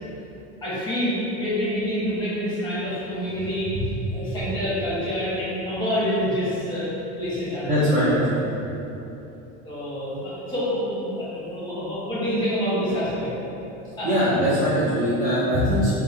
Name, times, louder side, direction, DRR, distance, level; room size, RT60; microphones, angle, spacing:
voice 1, 0.6-3.7 4.1-6.9 7.2-7.9 9.6-13.3 14.0-14.3, equal, 10° left, -10 dB, 1.1 m, -27 dB
voice 2, 7.7-8.4 14.0-15.9, equal, 20° right, -12 dB, 0.6 m, -21 dB
3.4 x 2.3 x 3.2 m, 3.0 s
supercardioid pair, 145°, 37 cm